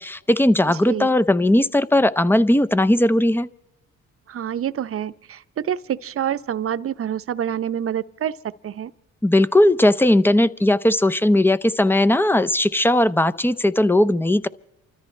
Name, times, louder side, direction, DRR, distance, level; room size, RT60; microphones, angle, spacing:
voice 1, 0.0-3.5 9.2-14.5, left 1 dB, 5° left, 0.5 m, -18 dB
voice 2, 4.3-8.3 8.6-8.9, right 9 dB, 50° right, 0.7 m, -27 dB
29.5 x 13.5 x 3.2 m
cardioid pair, 90°, 30 cm